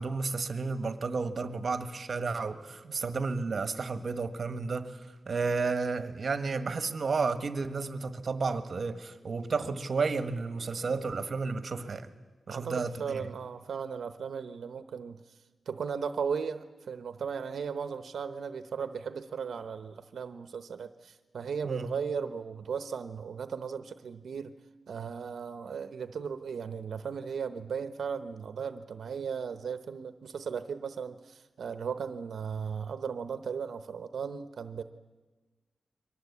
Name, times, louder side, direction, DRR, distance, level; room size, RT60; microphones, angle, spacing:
voice 1, 0.0-5.0 5.3-12.1 12.5-13.2 21.6-21.9, right 4 dB, 45° right, 10 dB, 1.5 m, -32 dB
voice 2, 12.5-15.4 15.7-24.5 24.9-34.8, right 6 dB, 80° right, 10 dB, 0.9 m, -36 dB
29.5 x 23.0 x 8.4 m, 1.3 s
wide cardioid pair, 160°, 0 cm